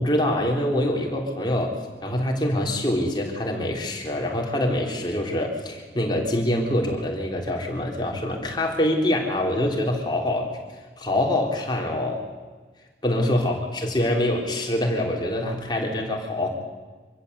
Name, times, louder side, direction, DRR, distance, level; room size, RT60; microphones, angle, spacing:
voice 1, 0.0-1.7 2.0-10.5 11.0-12.2 13.0-16.5, left 1 dB, 25° left, 0 dB, 3.7 m, -25 dB
25.5 x 15.5 x 8.3 m, 1.4 s
head